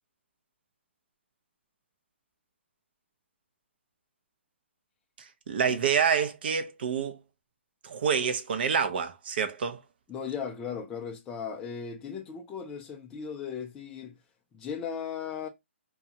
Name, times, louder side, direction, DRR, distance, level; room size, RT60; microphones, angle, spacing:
voice 1, 5.5-7.2 7.8-9.8, right 7 dB, 50° right, 0.6 m, -27 dB
voice 2, 10.1-14.1 14.5-15.5, left 7 dB, 10° left, 0.3 m, -37 dB
2.6 x 2.3 x 2.7 m
hypercardioid pair, 155°, 7 cm